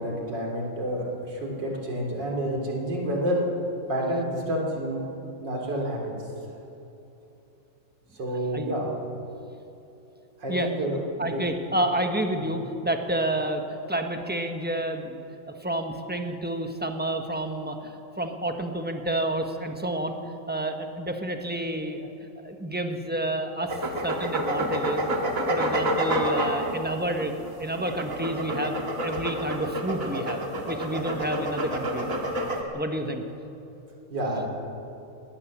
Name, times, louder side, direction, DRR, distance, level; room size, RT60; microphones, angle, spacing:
voice 1, 0.0-3.5 3.9-5.2 5.4-6.0 8.1-8.9 10.4-11.4 12.5-12.6 34.1-34.5, right 1 dB, 65° right, -1 dB, 3.8 m, -29 dB
voice 2, 11.2-13.6 13.9-15.2 15.6-20.2 20.5-22.1 22.4-23.8 24.0-25.1 25.5-27.3 27.6-28.8 29.0-32.1 32.7-33.2, right 1 dB, 5° right, 5 dB, 1.0 m, -29 dB
sound 1, 23.7-32.6, equal, 45° right, 2.3 m, -28 dB
20.5 x 17.0 x 7.4 m, 2.9 s
omnidirectional pair, 2.1 m